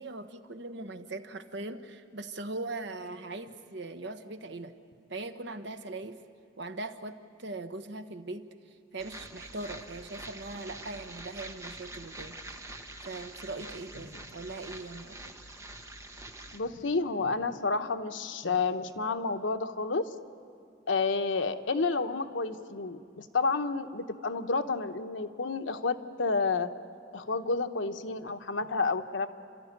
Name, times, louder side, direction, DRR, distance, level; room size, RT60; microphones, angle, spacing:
voice 1, 0.0-4.7 5.1-6.2 6.6-8.5 8.9-15.4, right 2 dB, 65° right, 8 dB, 1.1 m, -40 dB
sound 1, 9.0-16.6, right 2 dB, 15° right, 1.1 m, -45 dB
voice 2, 16.5-20.1 20.9-26.7 27.1-29.3, left 4 dB, 85° left, 7 dB, 1.0 m, -30 dB
30.0 x 13.0 x 9.6 m, 2.3 s
head